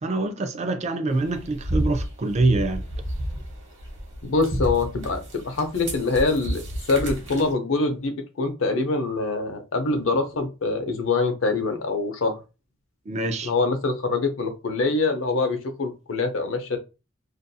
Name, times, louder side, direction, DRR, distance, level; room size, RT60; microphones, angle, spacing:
voice 1, 0.0-2.8 13.1-13.5, right 2 dB, 30° right, 0.4 m, -25 dB
sound 1, 1.1-7.5, right 1 dB, 60° right, 0.9 m, -31 dB
voice 2, 4.2-12.4 13.4-16.8, left 3 dB, 65° left, 0.6 m, -24 dB
2.5 x 2.3 x 2.6 m
head